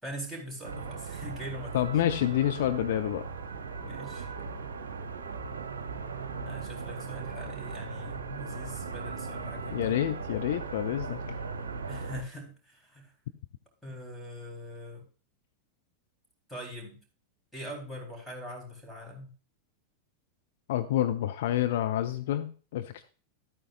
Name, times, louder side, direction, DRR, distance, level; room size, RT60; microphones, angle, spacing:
voice 1, 0.0-1.9 3.8-4.3 6.4-10.0 11.9-13.1 13.8-15.0 16.5-17.0 17.5-19.3, equal, ahead, -3 dB, 3.9 m, -42 dB
sound 1, 0.6-12.2, right 4 dB, 65° right, 1.0 m, -38 dB
voice 2, 1.7-3.2 9.7-11.4 20.7-23.0, left 12 dB, 55° left, 9 dB, 0.6 m, -28 dB
12.5 x 8.9 x 2.5 m, 0.37 s
figure-of-eight pair, 90°, 0 cm